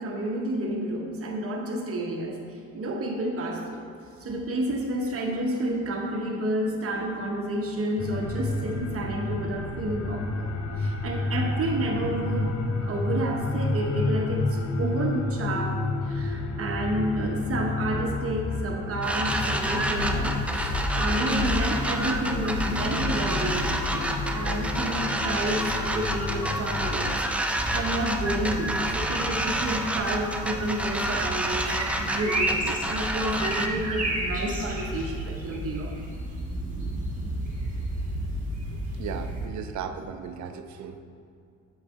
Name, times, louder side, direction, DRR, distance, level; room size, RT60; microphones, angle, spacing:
voice 1, 0.0-3.8 4.2-10.5 10.8-24.0 24.3-31.7 32.0-35.9, right 1 dB, 50° right, 2 dB, 1.0 m, -30 dB
sound 1, 8.0-27.2, left 2 dB, 55° left, 0.7 m, -30 dB
sound 2, 19.0-33.7, right 1 dB, 5° right, 0.4 m, -29 dB
ambience forest shore reeds bulrush province Dolginiha, 27.6-39.5, right 1 dB, 25° right, 1.5 m, -32 dB
voice 2, 38.9-41.0, right 7 dB, 70° right, 8 dB, 0.5 m, -36 dB
7.2 x 4.8 x 3.6 m, 2.4 s
cardioid pair, 90°, 30 cm